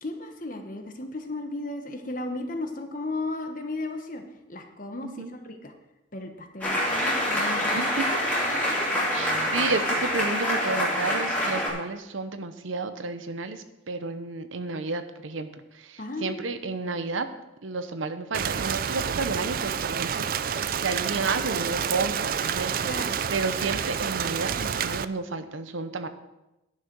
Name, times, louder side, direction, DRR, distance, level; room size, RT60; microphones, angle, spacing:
voice 1, 0.0-5.7 6.1-7.9 8.5-8.9 16.0-16.6 22.8-23.2, left 2 dB, 45° left, 5 dB, 1.1 m, -35 dB
sound 1, 6.6-11.7, equal, 10° left, 2.5 m, -26 dB
voice 2, 7.7-8.1 9.1-17.3 17.6-26.1, right 3 dB, 85° right, 9 dB, 0.8 m, -32 dB
Rain, 18.3-25.1, right 7 dB, 45° right, 0.4 m, -29 dB
10.5 x 6.5 x 6.0 m, 0.96 s
head